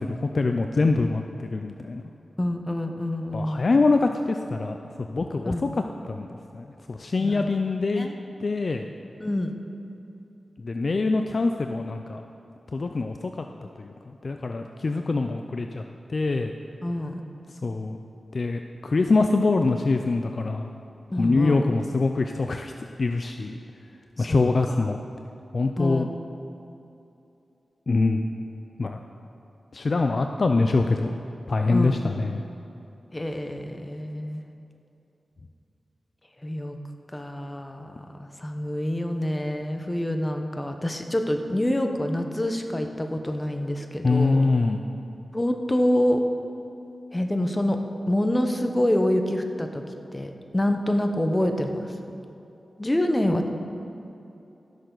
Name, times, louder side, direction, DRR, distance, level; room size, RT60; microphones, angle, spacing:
voice 1, 0.0-2.0 3.3-4.8 5.1-5.7 6.1-8.1 8.4-8.9 10.6-12.2 12.7-13.5 13.8-13.9 14.2-15.8 16.1-16.5 17.6-18.0 18.3-20.7 21.2-22.7 23.0-23.6 24.2-25.0 25.5-26.1 27.9-28.3 28.8-29.0 29.7-31.2 31.5-32.5 44.0-44.8, left 3 dB, 55° left, 5 dB, 0.4 m, -24 dB
voice 2, 2.4-3.7 5.4-5.8 7.2-7.5 8.0-8.1 9.2-9.5 16.8-17.2 21.1-21.6 24.2-24.4 25.8-26.1 31.7-32.1 33.1-34.5 36.4-36.8 37.1-44.4 45.3-46.2 47.1-47.8 48.1-49.8 50.1-51.9 52.8-53.5, left 1 dB, 20° left, 5 dB, 1.0 m, -26 dB
15.0 x 6.7 x 4.0 m, 2.8 s
cardioid pair, 55°, 0 cm